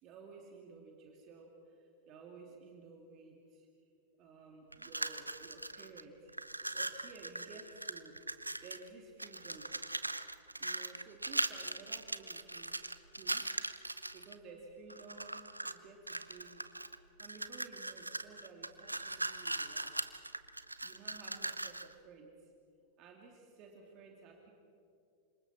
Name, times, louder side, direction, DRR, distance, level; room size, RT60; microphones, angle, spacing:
voice 1, 0.0-3.7 4.2-6.3 6.7-8.2 8.6-9.8 10.6-12.8 13.1-13.5 14.1-20.0 20.8-22.5 23.0-24.5, right 4 dB, 35° right, 1 dB, 2.7 m, -54 dB
sound 1, 4.7-6.0 6.3-8.9 9.2-14.3 14.9-15.8 16.1-21.9, right 2 dB, 85° right, 0.7 m, -40 dB
28.5 x 26.5 x 4.3 m, 2.5 s
figure-of-eight pair, 90°, 0 cm